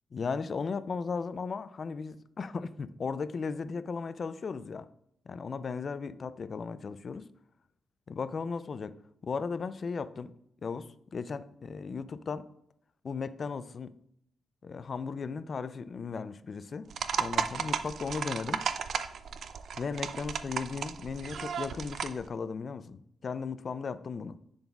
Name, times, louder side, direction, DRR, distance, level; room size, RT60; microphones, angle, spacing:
voice 1, 0.1-4.9 5.3-7.3 8.1-9.0 9.2-10.3 10.6-12.5 13.0-13.9 14.6-16.9 17.2-18.6 19.8-24.4, left 5 dB, 50° left, 13 dB, 0.3 m, -36 dB
sound 1, 16.9-22.2, right 6 dB, 70° right, 0.4 m, -34 dB
10.5 x 3.9 x 2.3 m, 0.71 s
cardioid pair, 85°, 0 cm